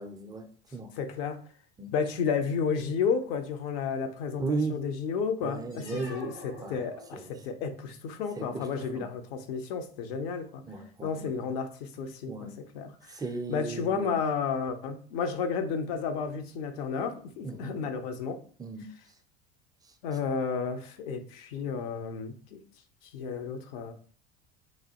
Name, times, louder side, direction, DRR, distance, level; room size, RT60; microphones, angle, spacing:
voice 1, 0.0-0.9 1.8-1.9 4.4-4.8 5.4-6.2 6.6-6.8 7.1-7.3 8.4-8.7 8.9-9.1 10.6-11.3 12.3-12.6 13.1-14.1 17.4-17.8 18.6-18.9, right 3 dB, 10° right, 0.3 m, -35 dB
voice 2, 1.0-1.4 1.9-10.6 11.0-12.5 12.7-13.1 13.5-18.4 20.0-22.6 23.1-23.9, left 6 dB, 60° left, 0.6 m, -32 dB
sound 1, 5.7-7.6, left 1 dB, 80° left, 1.5 m, -47 dB
3.1 x 2.2 x 2.8 m
figure-of-eight pair, 70°, 33 cm